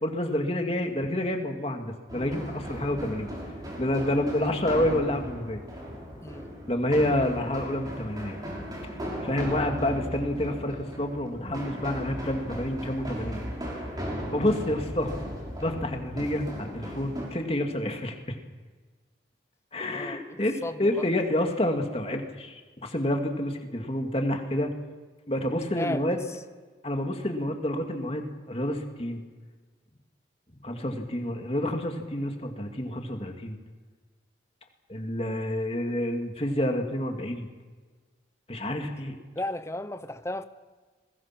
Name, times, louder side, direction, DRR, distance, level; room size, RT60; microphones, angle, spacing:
voice 1, 0.0-3.3 3.8-5.6 6.7-8.4 9.2-13.4 14.3-15.2 15.6-18.4 19.7-24.7 25.3-26.2 26.8-29.2 30.6-33.6 34.9-37.5 38.5-39.1, left 1 dB, 30° left, 4 dB, 2.4 m, -28 dB
sound 1, 2.1-17.3, equal, 20° right, 6.2 m, -37 dB
voice 2, 19.9-21.1 25.7-26.2 39.3-40.4, left 1 dB, 15° left, 12 dB, 0.9 m, -35 dB
29.5 x 21.5 x 6.1 m, 1.4 s
head